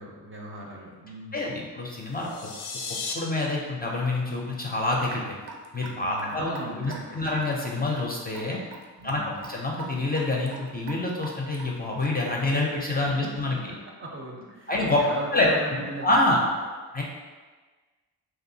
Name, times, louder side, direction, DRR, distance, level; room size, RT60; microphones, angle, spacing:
voice 1, 0.0-1.6 6.0-7.4 9.0-9.5 13.2-13.3 13.7-16.1 16.4-16.5, right 2 dB, 30° right, -1 dB, 0.5 m, -38 dB
voice 2, 1.3-2.5 3.1-5.4 5.7-8.6 9.0-13.6 14.7-15.0 15.3-15.5 16.0-16.4 16.9-17.0, left 2 dB, 25° left, -2 dB, 0.4 m, -27 dB
sound 1, 2.1-3.1, left 4 dB, 75° left, 0.5 m, -35 dB
Raindrop / Drip, 5.1-12.4, right 3 dB, 80° right, 0.5 m, -43 dB
2.7 x 2.3 x 2.6 m, 1.4 s
cardioid pair, 65°, 39 cm